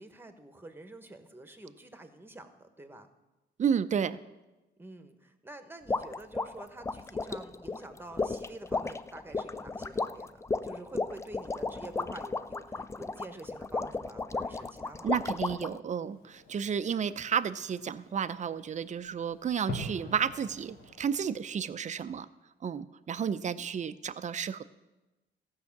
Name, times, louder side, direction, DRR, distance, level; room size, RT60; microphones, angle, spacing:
voice 1, 0.0-3.1 4.8-10.4 10.6-15.3, right 2 dB, 10° right, 9 dB, 1.2 m, -48 dB
voice 2, 3.6-4.2 15.0-22.3 22.6-24.6, right 7 dB, 35° right, 13 dB, 0.6 m, -32 dB
sound 1, 5.9-15.8, left 3 dB, 15° left, 0.4 m, -34 dB
Fireworks, 16.0-21.3, left 1 dB, 80° left, 2.0 m, -45 dB
14.5 x 5.6 x 7.2 m, 1.1 s
cardioid pair, 90°, 20 cm